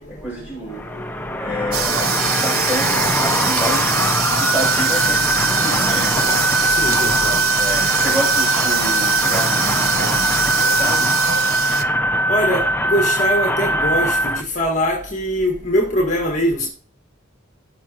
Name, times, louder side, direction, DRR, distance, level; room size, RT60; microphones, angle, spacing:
voice 1, 0.1-1.1 1.4-6.4 7.5-11.2, right 1 dB, 5° right, 5.7 m, -29 dB
voice 2, 0.6-1.4 1.9-2.6 6.7-7.5 12.3-16.7, equal, 35° left, 1.8 m, -23 dB
sound 1, 0.7-14.4, equal, 10° left, 0.6 m, -20 dB
sound 2, 1.7-11.8, right 8 dB, 85° right, 0.9 m, -22 dB
16.5 x 6.2 x 3.0 m
head